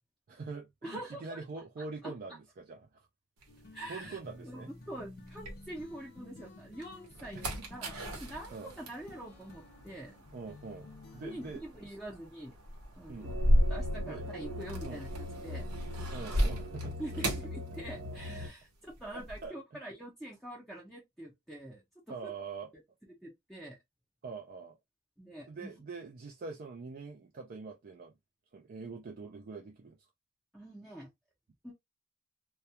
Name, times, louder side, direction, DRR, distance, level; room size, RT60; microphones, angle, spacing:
voice 1, 0.3-3.1 3.9-4.7 7.3-7.7 8.5-8.7 10.3-10.9 11.1-11.6 13.1-13.3 14.0-14.3 14.8-15.0 16.1-17.3 19.1-19.6 22.1-22.7 24.2-24.8 25.5-28.1 28.5-30.0, right 4 dB, 40° right, 0.4 m, -44 dB
voice 2, 0.8-2.1 3.7-4.2 4.4-10.1 11.2-12.6 12.9-13.3 13.7-15.7 17.0-22.3 23.2-23.8 25.2-25.7 30.5-31.1 31.6-31.7, right 1 dB, ahead, 0.6 m, -45 dB
sound 1, 3.4-6.2 6.6-18.4 18.6-19.5, equal, 90° right, 0.9 m, -35 dB
sound 2, 3.5-11.6, left 2 dB, 45° left, 0.6 m, -53 dB
sound 3, 13.2-18.5, left 1 dB, 70° right, 1.2 m, -41 dB
2.3 x 2.2 x 2.7 m
head